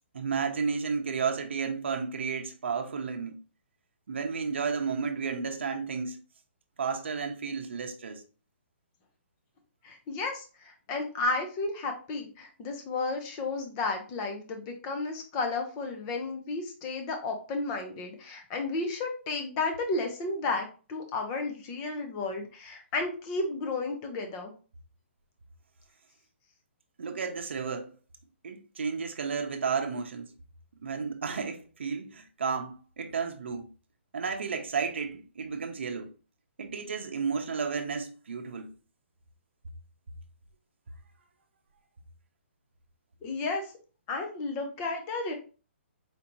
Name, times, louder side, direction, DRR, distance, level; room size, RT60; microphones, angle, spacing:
voice 1, 0.1-3.4 4.1-6.2 6.8-8.2 27.0-27.9 28.4-30.3 30.8-33.7 34.1-36.1 36.6-38.7, right 5 dB, 65° right, 0.6 m, -32 dB
voice 2, 9.8-24.5 43.2-43.7 44.1-45.3, left 3 dB, 15° left, 0.4 m, -33 dB
4.4 x 2.6 x 2.9 m
hypercardioid pair, 180°, 7 cm